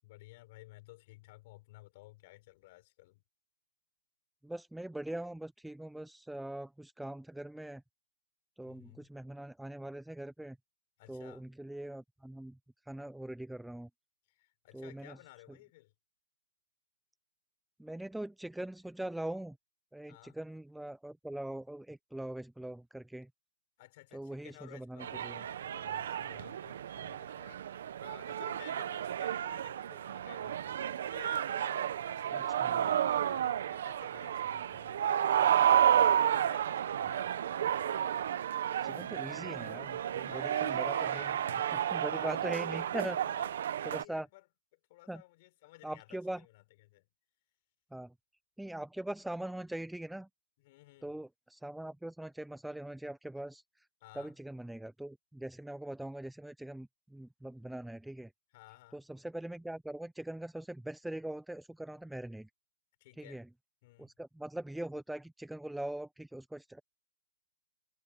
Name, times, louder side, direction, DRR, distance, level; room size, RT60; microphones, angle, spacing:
voice 1, 0.0-3.2 8.6-9.1 11.0-11.5 14.3-15.9 20.1-20.4 23.8-37.7 40.2-42.4 43.2-44.5 44.9-47.1 50.6-51.2 54.0-54.3 58.5-59.0 63.0-63.4 63.8-64.1, left 20 dB, 30° left, 6.2 m, -56 dB
voice 2, 4.4-7.8 8.6-10.6 11.1-12.6 12.9-13.9 14.7-15.1 17.8-19.6 19.9-23.3 24.1-25.4 32.3-32.9 38.8-41.2 41.9-43.2 43.9-44.3 45.1-45.2 45.8-46.4 47.9-48.1 48.6-50.3 51.0-53.6 54.2-58.3 58.9-62.5 63.2-63.4 64.0-66.8, right 1 dB, ahead, 0.3 m, -42 dB
sound 1, 25.0-44.0, right 10 dB, 50° right, 1.1 m, -31 dB
hypercardioid pair, 165°, 0 cm